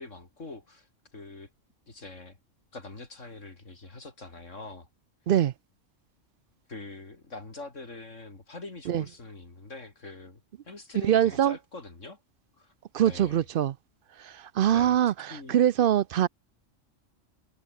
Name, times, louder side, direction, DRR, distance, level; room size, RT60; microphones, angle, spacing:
voice 1, 0.0-1.5 1.9-2.4 2.7-4.9 6.7-12.2 12.6-12.7 13.0-13.4 14.7-15.6 16.2-16.3, left 3 dB, 70° left, 3.9 m, -44 dB
voice 2, 11.0-11.6 12.9-13.7 14.2-16.3, right 10 dB, 60° right, 0.6 m, -23 dB
omnidirectional pair, 1.3 m